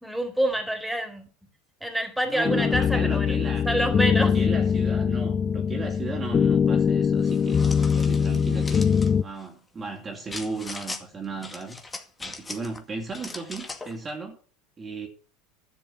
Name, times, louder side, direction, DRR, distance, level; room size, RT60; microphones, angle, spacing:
voice 1, 0.0-1.3 1.8-3.3 3.6-4.3, right 1 dB, 5° right, 3.9 m, -27 dB
voice 2, 2.2-3.7 4.1-7.6 7.9-8.8 9.2-14.4 14.8-15.1, right 3 dB, 25° right, 3.1 m, -35 dB
sound 1, 2.4-9.2, left 7 dB, 35° left, 0.5 m, -22 dB
sound 2, 7.2-9.1 10.3-11.0 11.4-12.8 13.1-14.0, left 3 dB, 15° left, 2.2 m, -39 dB
12.0 x 6.8 x 8.9 m
hypercardioid pair, 90°, 0 cm